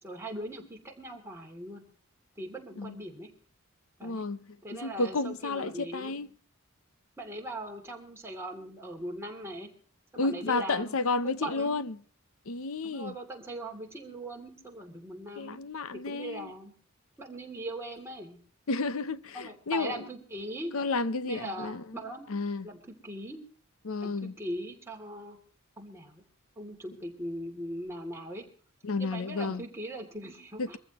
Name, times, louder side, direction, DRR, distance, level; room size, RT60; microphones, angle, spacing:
voice 1, 0.0-1.8 2.4-3.3 4.0-4.3 4.6-6.3 7.2-9.7 10.1-10.9 11.2-11.8 12.8-15.6 15.9-16.7 17.2-18.4 19.3-20.7 21.2-22.3 22.6-22.8 23.0-23.4 24.0-25.4 25.8-26.2 26.6-28.4 29.0-30.8, right 1 dB, 10° right, 2.9 m, -40 dB
voice 2, 4.0-4.5 4.8-6.3 10.2-11.9 12.5-13.1 15.4-16.5 18.7-19.9 20.7-21.8 22.3-22.7 23.8-24.3 28.8-29.6 30.6-30.8, left 3 dB, 70° left, 0.8 m, -31 dB
23.5 x 15.0 x 3.0 m
head